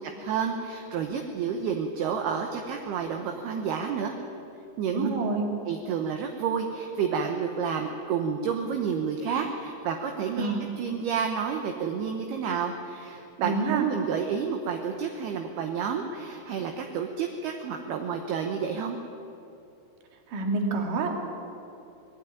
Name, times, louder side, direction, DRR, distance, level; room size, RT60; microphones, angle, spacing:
voice 1, 0.0-4.2 4.8-5.1 5.6-19.0, right 6 dB, 70° right, 4 dB, 2.8 m, -30 dB
voice 2, 4.9-5.4 10.4-10.6 13.4-13.9 20.3-21.1, right 3 dB, 50° right, 2 dB, 3.5 m, -27 dB
20.0 x 15.5 x 9.3 m, 2.9 s
omnidirectional pair, 5.2 m